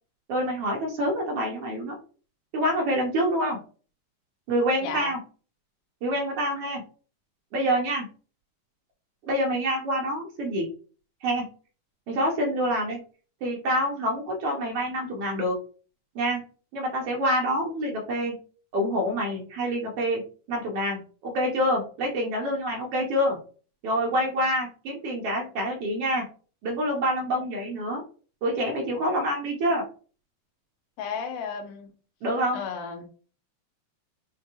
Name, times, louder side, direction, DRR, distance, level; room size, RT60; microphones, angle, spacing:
voice 1, 0.3-2.0 2.5-3.6 4.5-5.2 6.0-6.8 7.5-8.1 9.2-10.7 11.2-11.5 12.1-13.0 13.4-15.6 16.1-16.4 16.7-18.4 18.7-23.4 23.8-26.2 26.6-28.0 28.4-29.8 32.2-32.6, equal, 75° right, 0 dB, 1.4 m, -26 dB
voice 2, 4.8-5.1 31.0-31.9 32.5-33.1, left 6 dB, 85° left, 5 dB, 2.3 m, -33 dB
6.3 x 2.2 x 2.9 m, 0.39 s
omnidirectional pair, 3.6 m